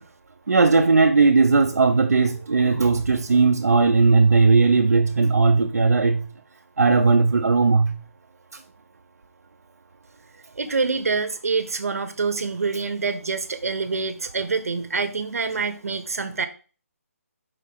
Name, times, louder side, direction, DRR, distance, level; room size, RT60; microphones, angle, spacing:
voice 1, 0.5-6.2 6.8-8.0, right 4 dB, 90° right, 0.8 m, -18 dB
voice 2, 10.6-16.5, right 4 dB, 70° right, 1.2 m, -26 dB
5.4 x 3.7 x 5.4 m
hypercardioid pair, 180°, 8 cm